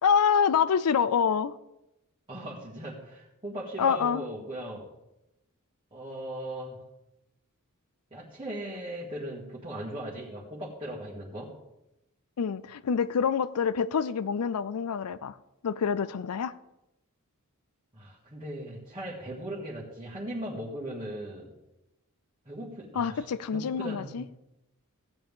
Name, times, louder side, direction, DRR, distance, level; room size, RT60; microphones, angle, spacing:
voice 1, 0.0-1.5 3.8-4.2 12.4-15.3 15.6-16.5 22.9-24.2, left 6 dB, 80° left, 15 dB, 0.4 m, -26 dB
voice 2, 2.3-4.9 5.9-6.8 8.1-11.6 17.9-21.5 22.5-23.3 23.5-24.2, right 1 dB, 25° right, -6 dB, 1.9 m, -38 dB
15.5 x 8.8 x 3.7 m, 0.91 s
head